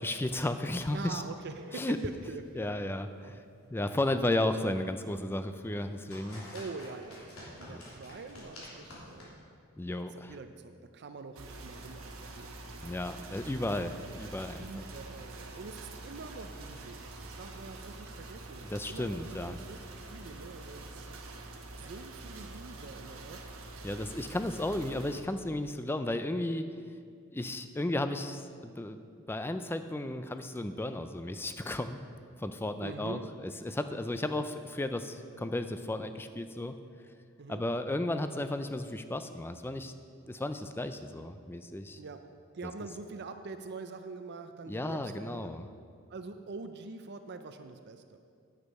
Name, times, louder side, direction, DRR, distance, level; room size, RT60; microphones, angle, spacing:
voice 1, 0.0-1.2 1.7-2.0 2.6-3.4 3.7-6.5 7.7-7.8 9.8-10.4 12.8-14.9 18.6-19.6 23.8-26.6 27.3-29.0 29.3-32.0 32.4-36.7 37.5-39.9 40.3-42.0 42.6-42.7 44.7-45.7, left 1 dB, 10° left, 9 dB, 0.4 m, -34 dB
voice 2, 0.9-3.0 6.5-9.5 9.9-12.6 14.6-21.2 21.8-23.4 32.8-33.3 37.4-37.6 42.0-42.2 42.5-45.5 46.1-48.2, right 3 dB, 50° right, 8 dB, 0.5 m, -44 dB
sound 1, 1.5-9.2, left 1 dB, 80° left, 3.1 m, -52 dB
sound 2, 11.4-25.2, right 2 dB, 70° right, 1.1 m, -46 dB
9.7 x 8.3 x 5.4 m, 2.3 s
head